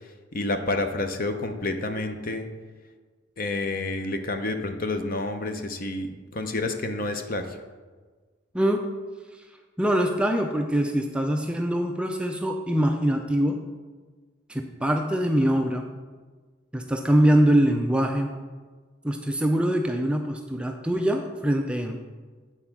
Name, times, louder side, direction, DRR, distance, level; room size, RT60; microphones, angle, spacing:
voice 1, 0.3-2.5 3.4-7.6, left 2 dB, 45° left, 7 dB, 0.7 m, -29 dB
voice 2, 8.5-8.9 9.8-13.6 14.5-15.9 16.7-18.3 19.0-22.0, right 1 dB, 5° right, 3 dB, 0.4 m, -23 dB
8.9 x 4.3 x 5.9 m, 1.4 s
head